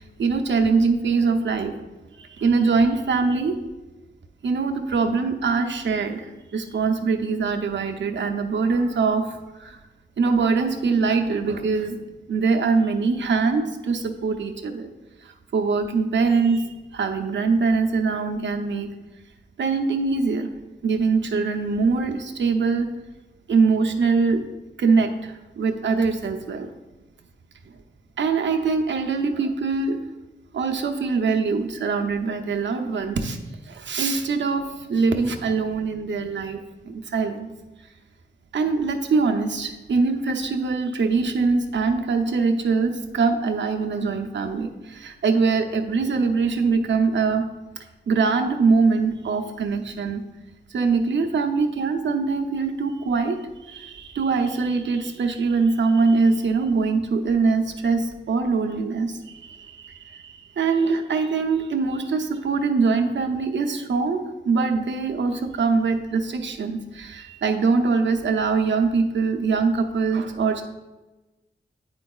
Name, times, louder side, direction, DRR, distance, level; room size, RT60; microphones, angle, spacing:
voice 1, 0.0-1.7 2.2-3.6 4.4-9.8 10.2-12.0 12.3-14.9 15.2-18.9 19.6-20.5 20.8-22.9 23.5-24.4 24.8-26.7 27.6-27.7 28.2-30.0 30.5-33.4 33.6-37.5 38.5-47.4 48.1-50.2 50.7-70.6, right 4 dB, 80° right, 4 dB, 0.6 m, -23 dB
9.5 x 4.5 x 2.3 m, 1.1 s
wide cardioid pair, 115°, 19 cm